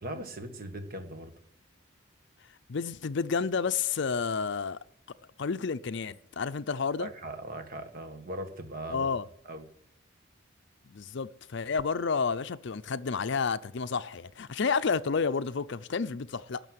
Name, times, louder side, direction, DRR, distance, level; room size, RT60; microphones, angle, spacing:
voice 1, 0.0-1.3 7.0-9.1 9.4-9.6, right 1 dB, 45° right, 1.6 m, -39 dB
voice 2, 2.7-4.8 5.4-7.1 8.9-9.3 10.9-16.6, left 5 dB, 60° left, 0.5 m, -30 dB
12.0 x 6.7 x 9.3 m
head